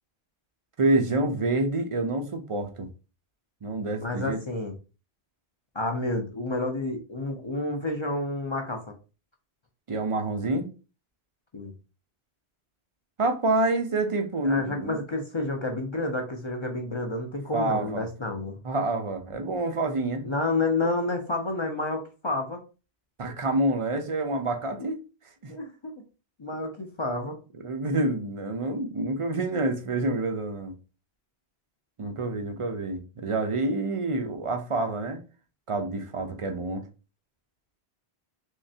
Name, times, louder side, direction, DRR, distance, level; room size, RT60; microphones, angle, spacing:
voice 1, 0.8-2.9 3.6-4.4 9.9-10.7 13.2-15.0 17.5-18.0 18.6-20.2 23.2-25.0 25.4-25.5 27.6-30.7 32.0-35.2 35.7-36.8, right 2 dB, 45° right, 0.4 m, -27 dB
voice 2, 4.0-4.7 5.7-8.8 11.5-11.7 14.4-18.6 20.2-22.6 25.5-25.9 26.4-27.4, left 2 dB, 40° left, 0.4 m, -30 dB
3.6 x 3.1 x 2.7 m
omnidirectional pair, 1.1 m